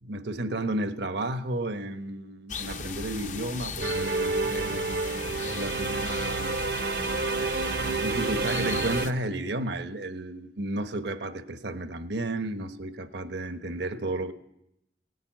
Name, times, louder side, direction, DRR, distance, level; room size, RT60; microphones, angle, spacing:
voice 1, 0.0-5.0 5.4-6.5 8.0-14.3, right 1 dB, 80° right, 1.1 m, -32 dB
sound 1, 2.5-9.1, left 5 dB, 45° left, 0.7 m, -37 dB
sound 2, 3.8-9.1, right 3 dB, 60° right, 0.6 m, -29 dB
17.0 x 9.3 x 9.1 m
head